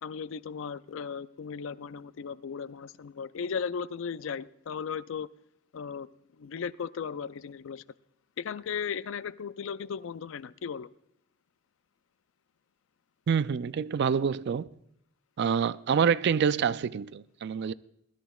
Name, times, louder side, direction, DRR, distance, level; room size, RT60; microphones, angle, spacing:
voice 1, 0.0-5.3 5.7-6.1 6.4-7.8 8.4-10.9, left 6 dB, 65° left, 0.4 m, -36 dB
voice 2, 13.3-14.7 15.4-17.7, right 7 dB, 55° right, 0.4 m, -26 dB
20.5 x 13.0 x 2.3 m
head